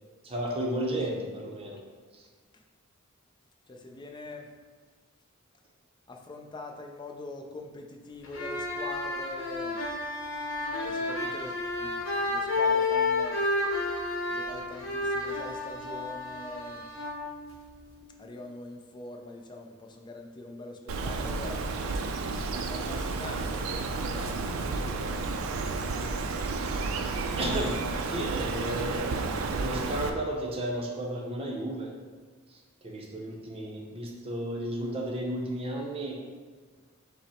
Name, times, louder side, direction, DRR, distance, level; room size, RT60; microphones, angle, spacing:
voice 1, 0.2-1.8 2.1-2.3 27.3-29.0 29.5-31.9 32.8-36.2, right 1 dB, 30° right, 0 dB, 0.7 m, -33 dB
voice 2, 3.7-4.5 6.1-9.8 10.8-12.0 12.2-13.4 14.3-16.9 18.2-21.8 22.7-25.2, left 2 dB, 20° left, 3 dB, 0.4 m, -43 dB
sound 1, 8.2-18.0, left 3 dB, 65° left, 0.7 m, -31 dB
Bird, 20.9-30.1, right 3 dB, 90° right, 0.4 m, -31 dB
5.7 x 2.1 x 4.1 m, 1.5 s
head